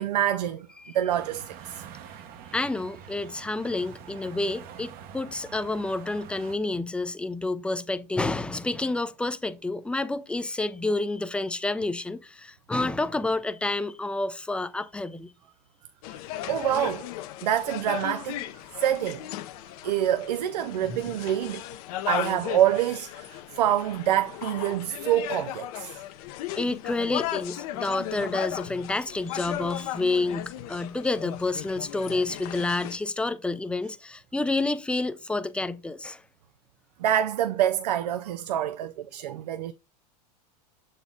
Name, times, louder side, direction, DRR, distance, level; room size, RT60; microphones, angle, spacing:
voice 1, 0.0-0.7 0.9-1.8 16.5-17.1 17.4-18.5 18.8-19.2 19.8-21.6 22.1-26.0 37.0-39.7, right 11 dB, 90° right, 0.5 m, -26 dB
sound 1, 1.1-6.6, right 8 dB, 50° right, 0.9 m, -45 dB
voice 2, 2.5-15.3 20.9-21.0 26.6-36.2, left 2 dB, 5° left, 0.5 m, -29 dB
sound 2, 16.0-33.0, left 13 dB, 65° left, 0.7 m, -36 dB
7.0 x 4.2 x 3.6 m
supercardioid pair, 120°, 20 cm